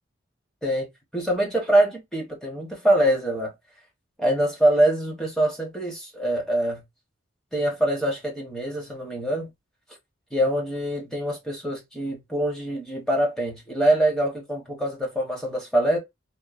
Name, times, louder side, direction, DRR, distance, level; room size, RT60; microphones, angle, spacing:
voice 1, 1.1-3.5 4.2-6.8 7.5-9.5 10.3-16.0, right 1 dB, 5° left, 0.8 m, -24 dB
2.9 x 2.1 x 2.3 m
head